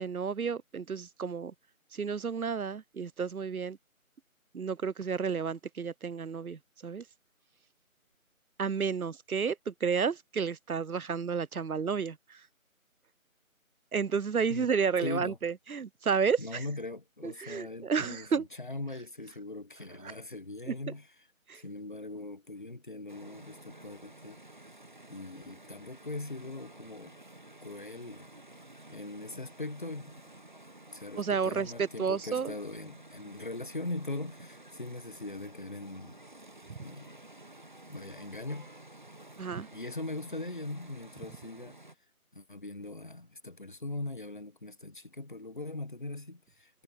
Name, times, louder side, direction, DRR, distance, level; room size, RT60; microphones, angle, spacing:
voice 1, 0.0-1.5 1.9-3.8 4.5-7.0 8.6-12.5 13.9-16.7 17.2-18.5 20.0-20.1 20.7-20.8 21.5-21.6 31.2-32.5 36.7-36.8 39.4-39.7, right 6 dB, 85° right, 0.8 m, -31 dB
voice 2, 15.0-15.4 16.4-21.1 21.5-24.4 25.1-27.2 27.6-28.3 28.9-30.2 30.9-36.2 36.8-37.1 37.9-38.7 39.7-41.8 42.3-46.8, left 2 dB, 35° left, 1.6 m, -40 dB
sound 1, 23.1-42.0, right 2 dB, 35° right, 1.4 m, -52 dB
figure-of-eight pair, 170°, 42 cm